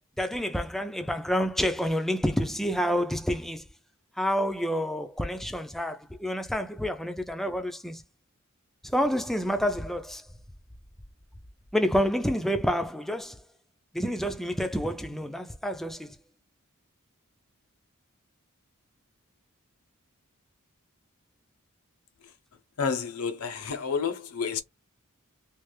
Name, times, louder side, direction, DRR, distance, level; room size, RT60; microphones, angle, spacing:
voice 1, 0.2-3.6 4.2-8.0 8.8-10.3 11.7-13.4 13.9-16.2, equal, ahead, 0.4 m, -28 dB
voice 2, 22.8-24.6, left 6 dB, 90° left, 0.7 m, -30 dB
3.2 x 2.4 x 3.2 m
head